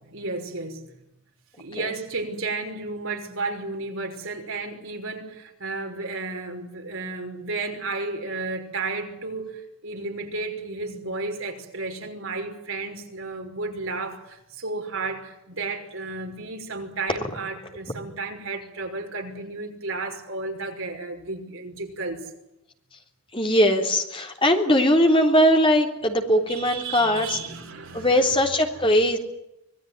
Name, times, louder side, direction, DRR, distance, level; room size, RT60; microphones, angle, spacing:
voice 1, 0.0-0.9 1.6-22.3 26.5-28.4, right 3 dB, 60° right, 4 dB, 5.7 m, -33 dB
voice 2, 23.3-27.4 27.9-29.2, equal, 25° left, 4 dB, 3.5 m, -20 dB
26.0 x 19.5 x 9.6 m, 0.86 s
head